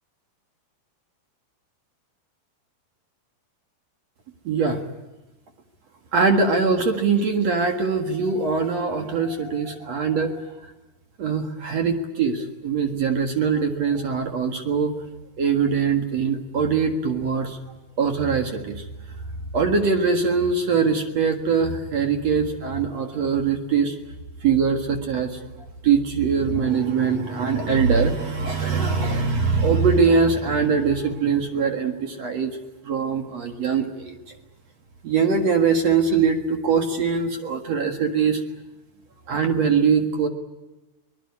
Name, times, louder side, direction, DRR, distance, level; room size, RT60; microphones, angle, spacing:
voice 1, 4.4-4.8 6.1-10.3 11.2-14.9 15.4-17.6 18.0-18.8 19.5-24.0 24.4-25.4 25.8-32.6 32.8-34.1 35.0-38.4 39.3-40.3, right 5 dB, 50° right, 4 dB, 2.5 m, -22 dB
24.0 x 20.0 x 9.7 m, 1.1 s
omnidirectional pair, 4.6 m